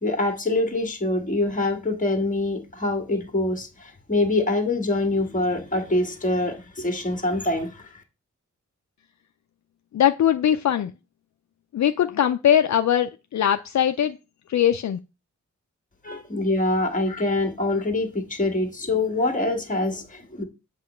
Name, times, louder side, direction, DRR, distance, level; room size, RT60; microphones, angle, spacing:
voice 1, 0.0-7.9 16.0-20.4, left 2 dB, 25° left, 1.7 m, -25 dB
voice 2, 9.9-10.9 11.7-14.2 14.5-15.0, left 10 dB, 70° left, 0.5 m, -21 dB
7.8 x 3.2 x 6.1 m
wide cardioid pair, 125°, 30 cm